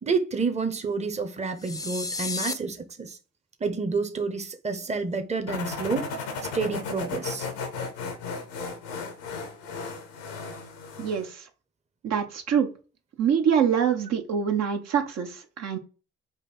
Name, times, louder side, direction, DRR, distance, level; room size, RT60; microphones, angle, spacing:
voice 1, 0.0-3.2 3.6-6.1 6.5-7.5, right 4 dB, 20° right, 0.8 m, -29 dB
sound 1, 1.6-2.5, left 3 dB, 10° left, 0.5 m, -32 dB
sound 2, 5.5-11.3, left 4 dB, 85° left, 0.8 m, -35 dB
voice 2, 11.0-11.4 12.0-12.7 13.2-15.8, right 7 dB, 60° right, 0.8 m, -25 dB
3.8 x 2.6 x 4.2 m
hypercardioid pair, 45°, 30 cm